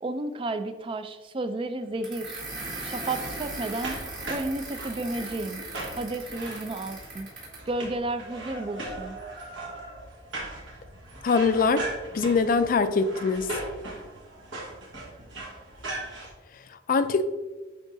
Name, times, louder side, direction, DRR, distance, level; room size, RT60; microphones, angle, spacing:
voice 1, 0.0-2.4 2.8-4.0 4.3-5.6 5.9-7.3 7.7-9.2, right 2 dB, 25° right, 0.3 m, -32 dB
sound 1, 2.0-7.7, right 2 dB, 45° right, 2.0 m, -38 dB
sound 2, 2.6-16.3, right 2 dB, 75° right, 1.4 m, -39 dB
voice 2, 11.2-11.9 12.1-13.5 16.9-17.2, left 4 dB, 45° left, 0.3 m, -22 dB
10.0 x 3.6 x 2.6 m
head